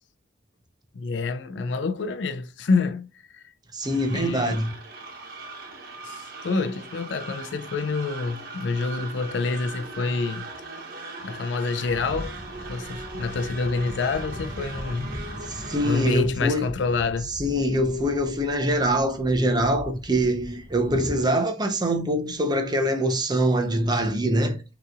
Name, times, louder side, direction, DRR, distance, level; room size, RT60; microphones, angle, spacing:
voice 1, 0.9-3.4 4.1-4.6 6.0-10.5 11.2-12.4 12.7-15.1 15.4-15.5 15.8-17.4, left 4 dB, 80° left, 0.4 m, -27 dB
voice 2, 3.7-4.7 15.5-16.7 17.3-24.6, right 1 dB, 25° right, 0.8 m, -24 dB
sound 1, 3.8-16.2, right 3 dB, 55° right, 1.2 m, -39 dB
sound 2, 11.8-21.2, equal, 30° left, 0.7 m, -39 dB
5.4 x 3.0 x 2.4 m
head